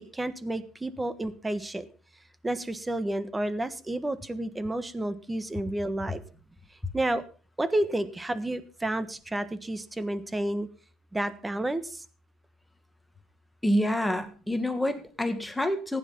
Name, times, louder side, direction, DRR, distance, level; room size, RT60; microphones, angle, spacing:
voice 1, 0.1-1.8 2.4-6.2 6.9-7.2 7.6-10.7 11.1-12.0, right 1 dB, 15° right, 14 dB, 1.4 m, -30 dB
voice 2, 13.6-16.0, left 1 dB, 5° left, 8 dB, 1.9 m, -27 dB
15.0 x 10.0 x 5.4 m, 0.39 s
supercardioid pair, 95°, 0 cm